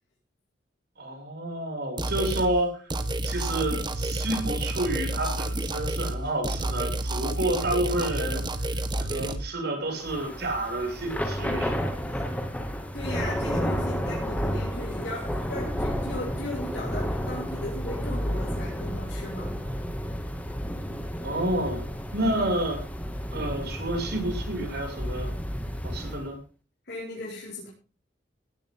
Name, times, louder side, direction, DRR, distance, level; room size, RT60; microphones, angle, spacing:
voice 1, 1.0-2.8 3.2-8.4 8.7-11.7 13.0-13.2 21.2-22.8 23.3-25.3 25.8-26.4, right 1 dB, 60° right, 7.0 m, -29 dB
sound 1, 2.0-2.5 2.9-6.2 6.4-9.4, right 1 dB, 25° right, 1.6 m, -30 dB
Thunder / Rain, 10.0-26.3, equal, 10° left, 2.6 m, -31 dB
voice 2, 12.9-19.6 26.8-27.7, left 1 dB, 60° left, 6.9 m, -37 dB
18.5 x 13.5 x 4.0 m
head